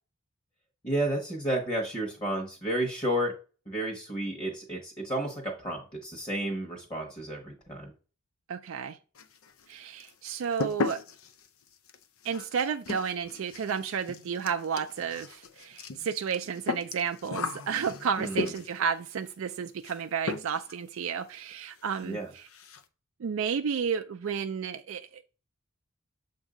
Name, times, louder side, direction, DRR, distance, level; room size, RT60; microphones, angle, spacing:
voice 1, 0.8-3.3 3.7-7.9 18.2-18.5 22.0-22.3, right 1 dB, 25° left, 1 dB, 1.1 m, -31 dB
voice 2, 8.5-9.0 9.7-11.0 12.2-22.5 23.2-25.2, right 7 dB, 65° right, 7 dB, 0.4 m, -32 dB
sound 1, 9.1-9.7 10.0-18.9 19.8-20.0 20.3-20.8 21.0-21.1 21.5-21.6 21.9-22.1 22.4-22.8, left 3 dB, 70° left, 0.5 m, -36 dB
7.3 x 2.7 x 4.9 m, 0.36 s
head